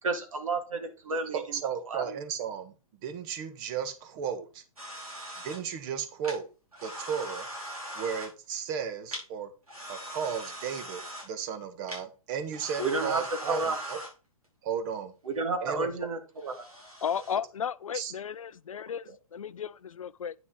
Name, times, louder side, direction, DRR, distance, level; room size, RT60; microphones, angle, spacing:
voice 1, 0.0-1.6 1.9-2.2 12.8-13.8 15.3-16.5, right 3 dB, 65° right, 2.1 m, -31 dB
voice 2, 1.3-2.7 3.0-4.6 5.4-6.5 6.8-7.5 7.9-9.5 9.9-14.0 14.6-15.1 15.6-15.9 17.9-18.1, right 7 dB, 35° right, 1.4 m, -34 dB
sound 1, 4.8-5.6 6.2-6.4 6.7-8.3 9.1-9.2 9.7-11.3 11.9-12.0 12.5-14.1 16.3-17.3, equal, 85° right, 5.2 m, -40 dB
voice 3, 17.0-20.3, left 8 dB, 70° left, 0.5 m, -34 dB
9.6 x 6.1 x 3.8 m
figure-of-eight pair, 115°, 18 cm